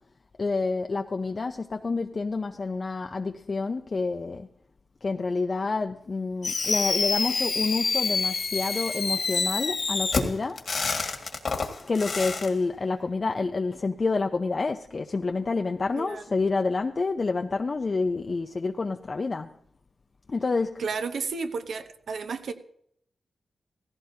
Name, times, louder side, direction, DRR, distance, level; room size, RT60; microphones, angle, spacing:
voice 1, 0.4-4.5 5.0-10.6 11.9-19.5 20.3-20.8, left 3 dB, 40° left, 5 dB, 0.5 m, -28 dB
Fireworks, 6.4-12.5, left 4 dB, 55° left, 1.8 m, -27 dB
voice 2, 15.9-16.2 20.8-22.5, right 5 dB, 80° right, 8 dB, 1.1 m, -32 dB
17.0 x 15.5 x 2.8 m, 0.69 s
wide cardioid pair, 105°, 0 cm